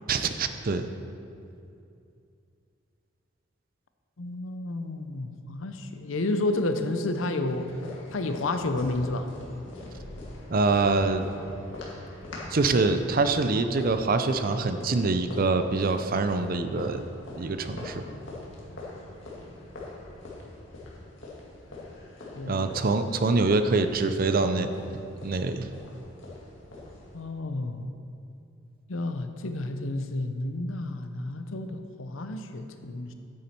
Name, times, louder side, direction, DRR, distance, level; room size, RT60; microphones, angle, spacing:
voice 1, 0.1-0.9 10.5-11.2 12.5-17.0 17.4-18.0 22.5-24.7 25.2-25.7, right 3 dB, 50° right, 9 dB, 0.5 m, -25 dB
voice 2, 4.2-7.8 8.1-9.3 22.3-22.7 27.1-27.9 28.9-33.1, left 2 dB, 85° left, 8 dB, 0.7 m, -31 dB
sound 1, 7.5-27.2, left 2 dB, 70° left, 2.1 m, -43 dB
9.3 x 8.7 x 4.4 m, 2.6 s
head